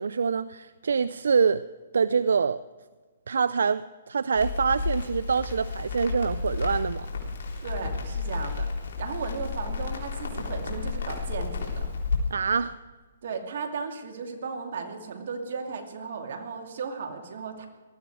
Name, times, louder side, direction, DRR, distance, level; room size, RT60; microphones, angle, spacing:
voice 1, 0.0-1.7 1.9-2.6 3.3-7.1 12.3-12.8, right 5 dB, 85° right, 16 dB, 0.4 m, -25 dB
Crackle, 4.4-12.2, left 4 dB, 65° left, 3.7 m, -32 dB
voice 2, 7.6-8.7 9.0-11.9 13.2-17.7, right 5 dB, 60° right, 4 dB, 2.6 m, -35 dB
19.0 x 13.0 x 4.8 m, 1.4 s
hypercardioid pair, 150°, 0 cm